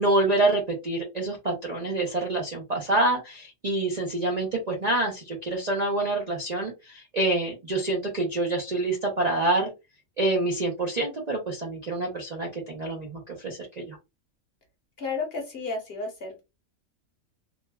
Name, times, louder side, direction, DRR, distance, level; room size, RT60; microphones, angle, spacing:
voice 1, 0.0-9.7 10.2-14.0, right 2 dB, 45° right, 0 dB, 0.5 m, -27 dB
voice 2, 15.0-16.4, left 4 dB, 45° left, 1 dB, 1.1 m, -32 dB
3.2 x 2.2 x 2.2 m, 0.24 s
omnidirectional pair, 1.5 m